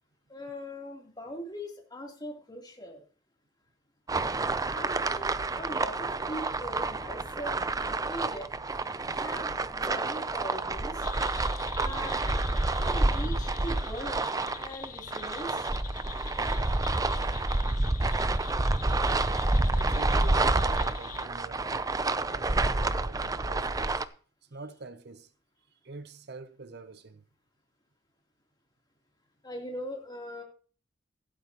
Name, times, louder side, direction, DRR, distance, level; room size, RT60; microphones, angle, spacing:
voice 1, 0.3-3.0 4.7-8.5 9.1-11.1 11.8-15.7 29.4-30.4, equal, 20° left, 3.2 m, -41 dB
sound 1, 4.1-24.0, right 2 dB, 20° right, 0.5 m, -29 dB
sound 2, 11.0-21.3, left 9 dB, 45° left, 0.6 m, -46 dB
voice 2, 19.7-24.1 24.4-25.3 25.7-27.2, right 3 dB, 60° right, 0.8 m, -46 dB
15.5 x 12.0 x 3.0 m
head